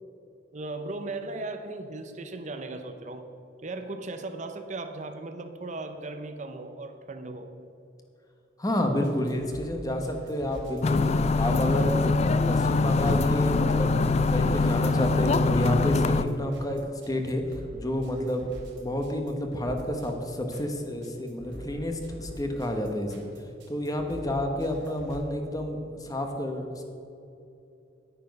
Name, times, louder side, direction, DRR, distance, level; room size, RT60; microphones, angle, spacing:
voice 1, 0.5-3.3 3.6-7.5, right 2 dB, 40° right, 7 dB, 0.7 m, -37 dB
voice 2, 8.6-11.0 11.4-11.9 12.2-17.4 17.7-18.5 18.8-23.2 23.7-26.8, left 1 dB, 20° left, 4 dB, 1.1 m, -30 dB
sound 1, 9.0-25.2, equal, 85° right, 2.7 m, -44 dB
sound 2, 10.8-16.2, left 3 dB, 35° left, 0.4 m, -23 dB
10.0 x 9.8 x 5.3 m, 2.8 s
head